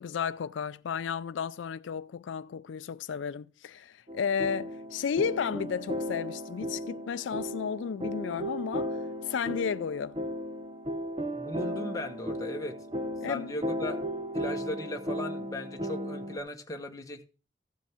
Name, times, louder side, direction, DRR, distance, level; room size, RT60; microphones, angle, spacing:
voice 1, 0.0-10.2 13.2-13.5, left 6 dB, 90° left, 0.4 m, -33 dB
sound 1, 4.1-16.4, equal, 30° right, 0.9 m, -35 dB
voice 2, 11.3-12.8 13.3-14.0 14.3-17.3, left 1 dB, 20° left, 1.2 m, -37 dB
15.0 x 5.2 x 4.9 m
head